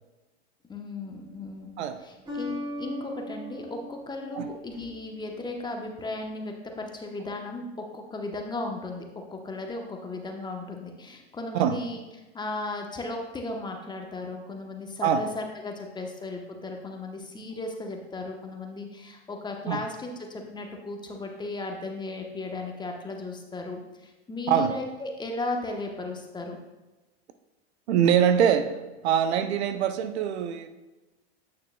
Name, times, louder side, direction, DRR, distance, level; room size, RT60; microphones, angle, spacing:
voice 1, 0.7-1.7 2.0-7.7 7.9-12.0 12.3-26.6, left 2 dB, 15° left, 2 dB, 0.9 m, -36 dB
sound 1, 1.1-1.6 2.3-5.2, left 1 dB, 15° right, 2.0 m, -38 dB
voice 2, 1.8-2.1 4.3-4.5 11.5-11.8 15.0-15.2 19.7-19.8 24.5-24.8 27.9-30.7, right 8 dB, 75° right, 9 dB, 0.6 m, -24 dB
8.5 x 6.3 x 2.2 m, 1.1 s
hypercardioid pair, 100°, 33 cm